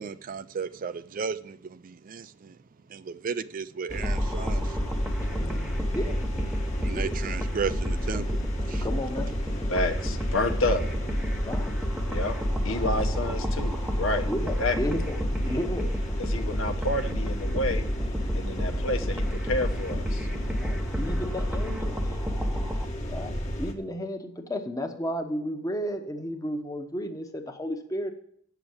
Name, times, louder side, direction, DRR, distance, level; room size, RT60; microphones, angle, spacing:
voice 1, 0.0-2.5 2.9-4.6 6.8-8.2 8.7-8.8, right 6 dB, 45° right, 0.4 m, -34 dB
sound 1, 3.9-23.7, equal, 35° left, 1.4 m, -33 dB
sound 2, 4.0-22.9, equal, 5° right, 0.8 m, -30 dB
voice 2, 5.3-5.7 9.7-10.8 12.1-12.3 12.6-14.9 16.3-17.8 18.3-20.3, left 2 dB, 80° left, 1.1 m, -30 dB
voice 3, 8.8-9.3 11.4-11.7 12.6-12.9 14.2-15.2 15.4-15.9 20.6-22.0 23.1-28.1, equal, 15° left, 1.0 m, -33 dB
8.2 x 7.0 x 7.8 m
head